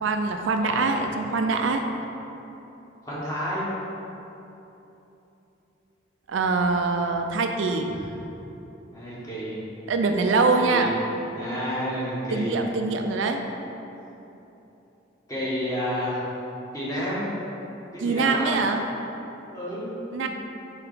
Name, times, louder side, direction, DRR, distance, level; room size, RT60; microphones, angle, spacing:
voice 1, 0.0-1.8 6.3-7.9 9.9-10.9 12.3-13.4 18.0-18.8 20.1-20.3, right 3 dB, 70° right, 5 dB, 0.4 m, -24 dB
voice 2, 0.6-0.9 3.0-3.6 7.9-8.0 8.9-9.6 10.6-10.9 11.4-12.5 13.5-13.6 15.3-16.2 16.7-17.3 17.9-18.5 19.5-19.9 20.2-20.3, equal, 15° left, -9 dB, 1.4 m, -30 dB
4.9 x 4.2 x 4.9 m, 3.0 s
head